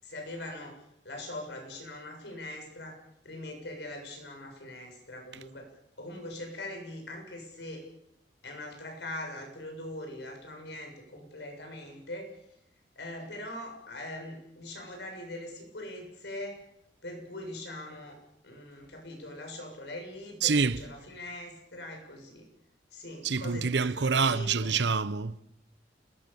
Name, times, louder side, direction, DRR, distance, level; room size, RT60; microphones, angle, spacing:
voice 1, 0.0-5.7 6.0-7.8 8.4-12.3 13.0-16.6 17.0-18.2 18.4-22.5 22.9-24.7, left 1 dB, 70° left, 7.2 m, -42 dB
voice 2, 20.4-20.8 23.2-25.4, right 5 dB, 70° right, 0.9 m, -26 dB
29.5 x 20.0 x 7.1 m
head